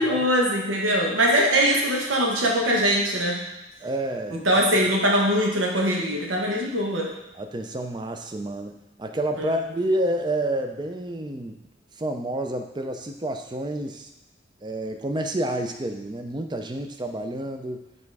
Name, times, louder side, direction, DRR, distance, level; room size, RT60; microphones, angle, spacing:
voice 1, 0.0-3.4 4.3-7.1 9.4-9.6, equal, 90° right, -1 dB, 1.3 m, -22 dB
voice 2, 3.8-4.6 7.3-11.6 12.0-14.1 14.6-17.8, right 1 dB, 25° right, 5 dB, 0.4 m, -29 dB
5.4 x 4.1 x 4.7 m, 0.91 s
head